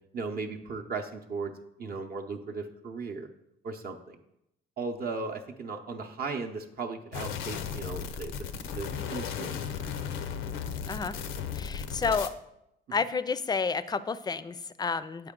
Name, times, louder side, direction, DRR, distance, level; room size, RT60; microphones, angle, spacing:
voice 1, 0.1-1.5 1.8-3.3 3.6-4.2 4.8-9.7 12.0-12.1, right 4 dB, 50° right, 2 dB, 0.6 m, -37 dB
sound 1, 7.1-12.3, left 7 dB, 85° left, 0.5 m, -35 dB
voice 2, 11.5-12.3 12.9-15.3, left 5 dB, 20° left, 14 dB, 0.3 m, -30 dB
7.8 x 4.5 x 3.7 m, 0.83 s
cardioid pair, 90°, 20 cm